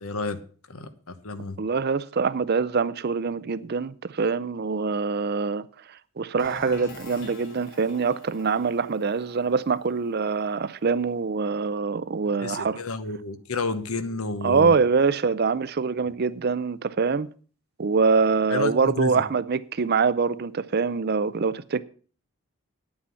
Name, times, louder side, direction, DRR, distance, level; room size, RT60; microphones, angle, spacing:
voice 1, 0.0-0.4 0.7-1.6 12.4-14.7 18.5-19.2, left 3 dB, 75° left, 1.0 m, -31 dB
voice 2, 1.6-5.7 6.2-12.8 14.4-17.3 17.8-21.8, right 5 dB, 45° right, 0.5 m, -24 dB
sound 1, 6.4-12.0, left 2 dB, 55° left, 3.3 m, -45 dB
9.6 x 8.8 x 5.6 m
head